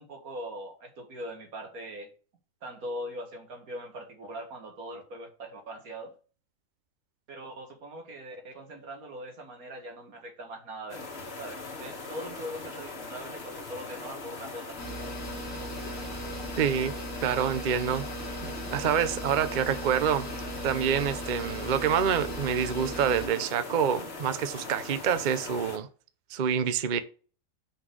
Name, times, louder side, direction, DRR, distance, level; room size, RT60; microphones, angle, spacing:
voice 1, 0.0-2.1 2.6-6.1 7.3-11.0 11.3-14.8, equal, 60° right, 2.2 m, -41 dB
sound 1, 10.9-25.8, left 3 dB, 40° left, 1.6 m, -40 dB
sound 2, 14.8-23.3, right 1 dB, 10° left, 2.2 m, -38 dB
voice 2, 16.6-16.9 17.2-18.1 18.4-20.3 20.6-25.9 26.3-27.0, right 8 dB, 75° right, 0.4 m, -27 dB
5.8 x 5.3 x 6.3 m
omnidirectional pair, 1.8 m